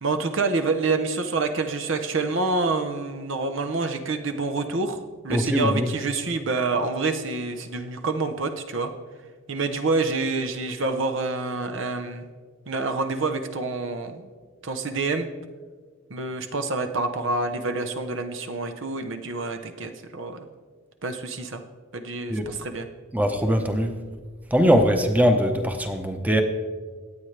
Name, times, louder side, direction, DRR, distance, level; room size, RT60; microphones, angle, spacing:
voice 1, 0.0-5.0 5.2-8.9 9.5-12.3 12.7-14.3 14.6-15.3 16.1-20.5 21.0-21.6 21.9-22.9, right 3 dB, 65° right, 7 dB, 0.9 m, -27 dB
voice 2, 5.3-5.9 22.3-22.5 23.1-23.9 24.5-26.4, equal, 10° right, 5 dB, 0.9 m, -21 dB
25.0 x 8.8 x 3.3 m, 1.5 s
head